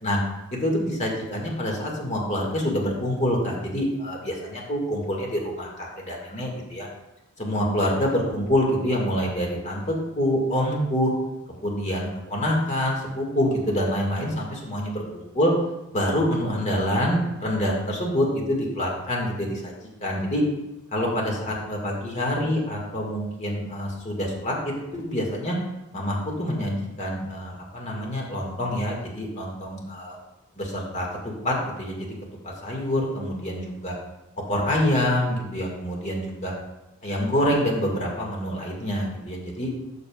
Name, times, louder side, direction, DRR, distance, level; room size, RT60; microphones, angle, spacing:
voice 1, 0.5-6.9 7.4-11.1 11.6-15.5 15.9-19.7 20.0-20.4 20.9-25.6 25.9-30.2 30.6-32.1 32.4-33.9 34.5-36.5 37.0-39.7, equal, 30° left, -1 dB, 1.8 m, -26 dB
12.5 x 6.7 x 2.3 m, 0.93 s
head